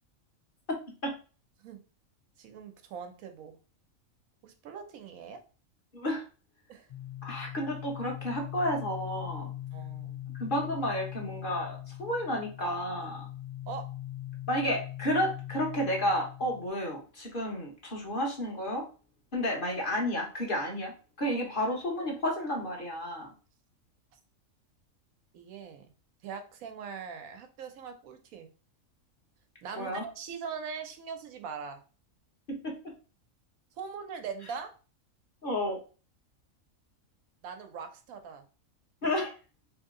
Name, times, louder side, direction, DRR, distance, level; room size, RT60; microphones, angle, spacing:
voice 1, 2.4-3.6 4.4-5.4 6.7-6.9 9.7-10.2 13.7-13.9 25.3-25.9 26.2-28.5 29.6-31.8 33.8-34.7 37.4-38.5, right 6 dB, 90° right, 6 dB, 1.1 m, -41 dB
voice 2, 5.9-6.2 7.2-9.5 10.4-13.3 14.5-18.8 19.3-20.9 21.2-23.3 29.8-30.0 32.5-32.7 35.4-35.8 39.0-39.3, equal, 40° left, -1 dB, 1.1 m, -31 dB
sound 1, 6.9-16.7, left 13 dB, 80° left, 0.4 m, -41 dB
3.1 x 2.8 x 3.6 m, 0.35 s
omnidirectional pair, 1.4 m